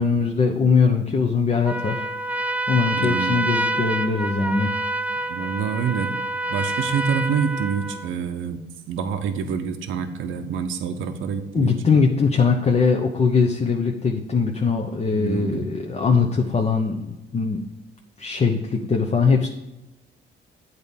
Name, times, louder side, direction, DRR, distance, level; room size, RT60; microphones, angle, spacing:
voice 1, 0.0-2.0 2.4-4.8 11.5-17.6 18.2-19.5, left 5 dB, 35° left, 2 dB, 0.8 m, -21 dB
Trumpet, 1.6-8.1, right 2 dB, 5° right, 0.5 m, -27 dB
voice 2, 3.0-3.4 5.3-6.1 6.5-8.6 8.9-11.8 15.1-15.7, right 6 dB, 80° right, 7 dB, 0.8 m, -26 dB
8.7 x 4.1 x 7.0 m, 1.0 s
cardioid pair, 90°, 20 cm